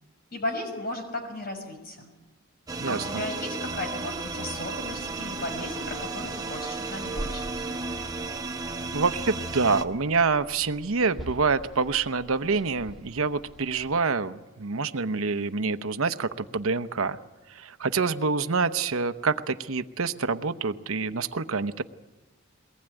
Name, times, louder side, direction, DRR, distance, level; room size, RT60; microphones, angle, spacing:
voice 1, 0.3-2.1 2.9-7.6, left 1 dB, 45° left, 4 dB, 5.9 m, -35 dB
sound 1, 2.7-9.8, right 3 dB, 15° right, 0.9 m, -34 dB
voice 2, 2.8-3.2 8.9-17.2 17.5-21.8, right 4 dB, 80° right, 11 dB, 0.9 m, -27 dB
sound 2, 4.0-14.0, right 1 dB, ahead, 1.9 m, -45 dB
22.5 x 19.0 x 9.0 m, 1.1 s
head